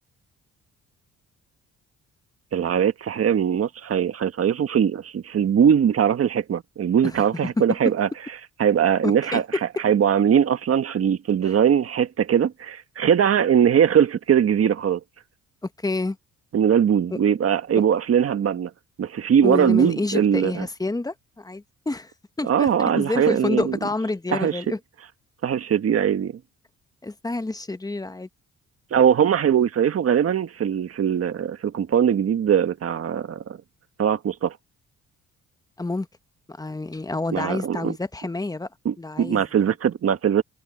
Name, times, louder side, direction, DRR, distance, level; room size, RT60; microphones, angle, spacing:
voice 1, 2.5-8.1 8.6-9.4 9.8-15.0 16.5-18.7 19.0-20.6 22.4-23.7 24.3-24.6 25.4-26.3 28.9-33.6 34.0-34.5 37.3-37.9 38.8-40.4, right 8 dB, 50° right, 1.5 m, -21 dB
voice 2, 7.0-7.8 9.0-9.6 11.4-11.5 15.6-16.2 19.4-22.1 22.4-22.7 23.0-24.8 27.0-28.3 35.8-36.1 36.5-38.7 39.0-39.7, left 2 dB, 10° left, 1.1 m, -28 dB
cardioid pair, 90°, 30 cm